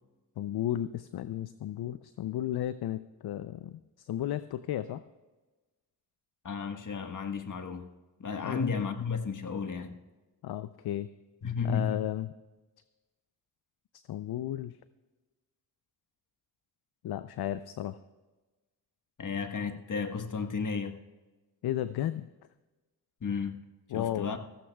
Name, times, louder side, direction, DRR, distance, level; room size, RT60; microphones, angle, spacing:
voice 1, 0.4-5.0 8.4-8.6 10.4-11.1 11.6-12.3 14.1-14.8 17.0-18.0 21.6-22.3 23.9-24.3, left 12 dB, 65° left, 14 dB, 0.6 m, -34 dB
voice 2, 6.4-7.9 8.2-10.0 11.4-12.0 19.2-21.0 23.2-23.6 23.9-24.4, left 5 dB, 45° left, 7 dB, 1.4 m, -33 dB
16.5 x 15.0 x 2.3 m, 1.2 s
supercardioid pair, 40°, 42 cm